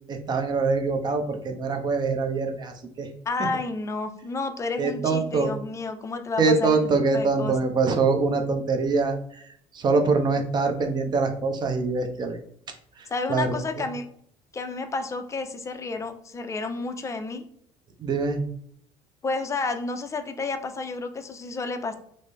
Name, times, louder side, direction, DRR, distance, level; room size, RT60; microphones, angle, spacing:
voice 1, 0.1-3.1 4.8-5.5 6.4-9.2 9.7-12.4 13.3-13.6 18.0-18.4, right 4 dB, 35° right, 5 dB, 0.6 m, -24 dB
voice 2, 3.3-6.8 7.1-7.7 13.1-14.0 14.5-17.4 19.2-22.0, left 3 dB, 25° left, 7 dB, 0.5 m, -31 dB
3.8 x 2.1 x 3.3 m, 0.65 s
cardioid pair, 115°, 13 cm